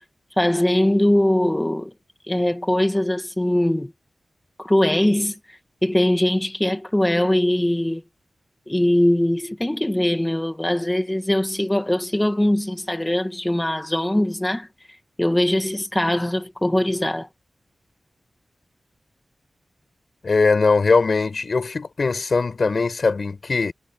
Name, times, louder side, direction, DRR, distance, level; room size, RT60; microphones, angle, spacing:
voice 1, 0.4-1.9 2.3-3.9 4.6-5.3 5.8-8.0 8.7-14.7 15.2-17.3, left 1 dB, 10° left, 2.1 m, -21 dB
voice 2, 20.2-23.7, left 4 dB, 55° left, 5.3 m, -20 dB
wide cardioid pair, 80°, 0 cm